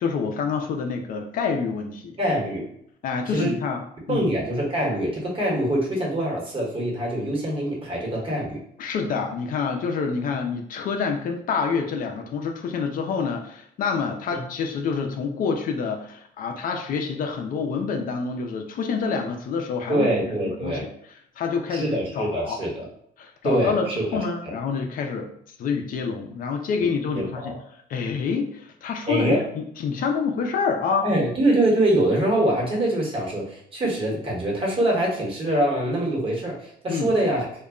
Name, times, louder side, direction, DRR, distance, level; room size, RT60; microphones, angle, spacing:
voice 1, 0.0-2.2 3.0-4.3 8.8-20.8 21.4-21.9 22.1-22.6 23.2-25.3 25.6-27.5 27.9-31.0 36.9-37.1, left 5 dB, 55° left, 3 dB, 0.4 m, -27 dB
voice 2, 2.2-2.7 3.3-3.6 4.1-8.6 14.3-14.4 19.9-20.8 21.7-22.8 23.4-24.2 24.4-24.5 26.8-26.9 27.1-27.6 29.1-29.4 31.0-37.5, right 1 dB, 30° right, -3 dB, 1.1 m, -24 dB
2.2 x 2.0 x 3.6 m, 0.68 s
cardioid pair, 110°, 17 cm